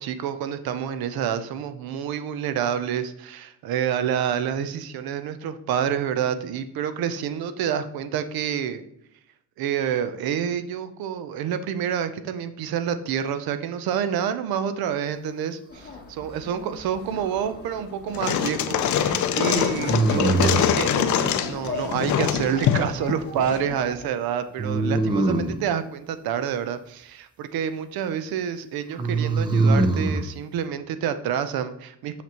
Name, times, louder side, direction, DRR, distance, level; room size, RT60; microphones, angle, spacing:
voice 1, 0.0-8.8 9.6-32.2, right 8 dB, 80° right, 11 dB, 0.6 m, -28 dB
sound 1, 15.7-24.1, left 3 dB, 30° left, 0.8 m, -38 dB
sound 2, 17.1-17.8 19.8-20.8 24.6-25.6 29.0-30.2, right 2 dB, 15° right, 0.4 m, -23 dB
sound 3, 18.1-23.6, left 9 dB, 55° left, 0.5 m, -24 dB
5.9 x 5.8 x 2.9 m, 0.76 s
cardioid pair, 160°, 36 cm